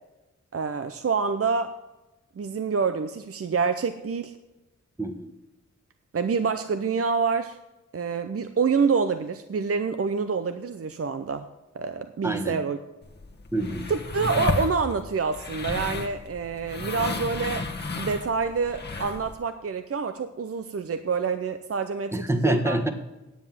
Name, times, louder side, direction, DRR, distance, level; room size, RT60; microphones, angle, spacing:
voice 1, 0.5-1.8 2.4-4.4 6.1-7.6 7.9-11.5 11.7-12.8 13.9-17.7 18.0-22.8, right 5 dB, 50° right, 9 dB, 0.6 m, -27 dB
voice 2, 5.0-5.3 12.2-12.6 13.5-13.8 22.1-22.9, right 1 dB, 10° right, 7 dB, 1.3 m, -26 dB
sound 1, 13.0-19.3, left 3 dB, 35° left, 1.4 m, -33 dB
9.6 x 7.8 x 7.5 m, 1.0 s
wide cardioid pair, 75°, 29 cm